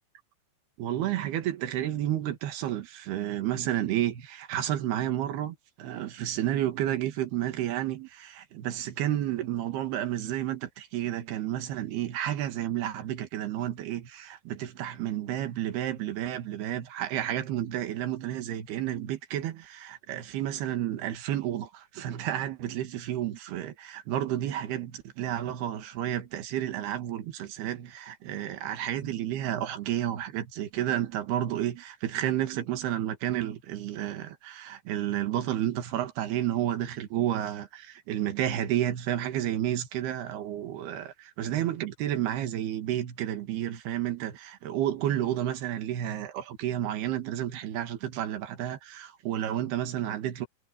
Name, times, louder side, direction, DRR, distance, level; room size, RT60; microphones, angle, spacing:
voice 1, 0.8-50.5, right 12 dB, 75° right, 3.7 m, -31 dB
omnidirectional pair, 4.7 m